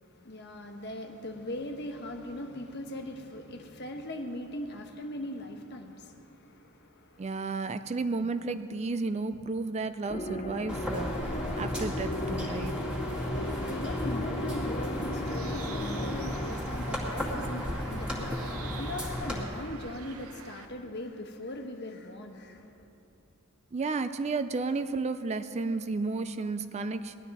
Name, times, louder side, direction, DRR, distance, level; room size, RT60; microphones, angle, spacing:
voice 1, 0.0-7.4 9.3-9.7 13.0-22.9, left 1 dB, 50° left, 4 dB, 1.2 m, -40 dB
voice 2, 7.2-12.8 23.7-27.2, right 3 dB, 30° right, 11 dB, 0.4 m, -32 dB
sound 1, 10.1-16.5, left 1 dB, 30° left, 0.7 m, -36 dB
sound 2, 10.7-19.4, equal, 5° right, 2.2 m, -34 dB
Bird, 15.2-20.7, right 6 dB, 80° right, 0.8 m, -48 dB
19.5 x 12.5 x 4.1 m, 2.7 s
head